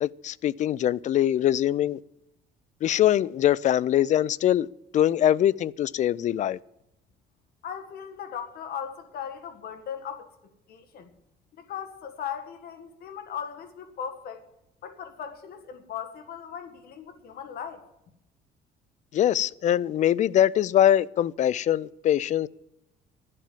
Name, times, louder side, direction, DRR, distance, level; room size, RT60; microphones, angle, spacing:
voice 1, 0.0-2.0 2.8-4.7 4.9-6.6 19.1-22.5, left 11 dB, 45° left, 0.4 m, -23 dB
voice 2, 7.6-10.3 10.7-11.1 11.6-14.4 14.8-17.9, left 8 dB, 65° left, 1.7 m, -38 dB
11.5 x 7.5 x 9.1 m
cardioid pair, 110°, 17 cm